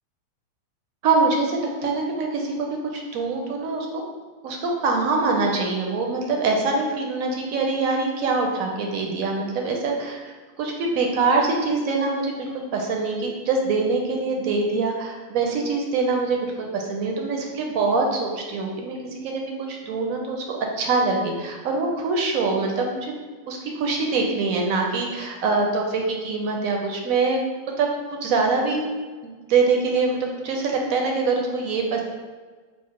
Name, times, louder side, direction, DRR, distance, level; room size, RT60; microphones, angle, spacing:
voice 1, 1.0-4.0 4.4-23.1 23.5-27.4 27.8-27.9 28.2-28.8 29.2-32.0, right 3 dB, 70° right, 1 dB, 0.9 m, -24 dB
4.4 x 2.0 x 4.2 m, 1.4 s
omnidirectional pair, 1.8 m